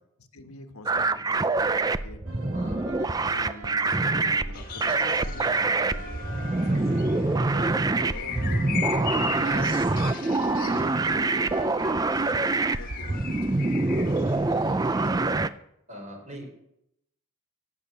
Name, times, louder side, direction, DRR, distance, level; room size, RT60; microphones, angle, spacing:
voice 1, 0.2-2.2 2.6-6.3 6.6-7.0 7.4-9.8 10.3-15.5, left 2 dB, 80° left, 7 dB, 1.4 m, -46 dB
sound 1, 0.9-15.5, right 3 dB, 15° right, 0.4 m, -25 dB
sound 2, 2.2-11.7, right 1 dB, 85° right, 1.6 m, -42 dB
sound 3, 4.5-15.1, left 7 dB, 40° left, 1.6 m, -39 dB
voice 2, 15.9-16.5, equal, 35° right, 2 dB, 4.3 m, -42 dB
16.5 x 6.9 x 7.8 m, 0.78 s
head